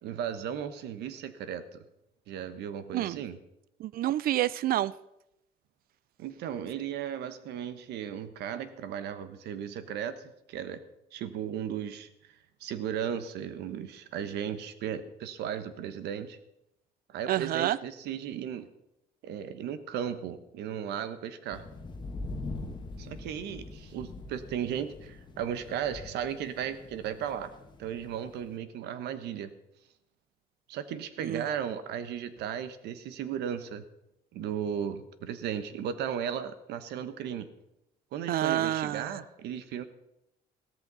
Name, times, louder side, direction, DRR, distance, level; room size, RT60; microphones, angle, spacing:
voice 1, 0.0-1.8 2.3-3.4 6.2-10.8 11.1-12.1 12.6-16.4 17.1-18.7 19.2-21.6 23.0-27.5 27.8-29.5 30.7-33.8 34.3-37.5 38.1-39.8, right 9 dB, 80° right, 12 dB, 1.2 m, -35 dB
voice 2, 3.8-4.9 17.3-17.8 31.2-31.5 38.3-39.1, right 13 dB, 60° right, 20 dB, 0.5 m, -28 dB
sound 1, 21.5-28.6, left 2 dB, 25° left, 1.6 m, -43 dB
15.5 x 13.5 x 4.0 m, 0.86 s
cardioid pair, 110°, 17 cm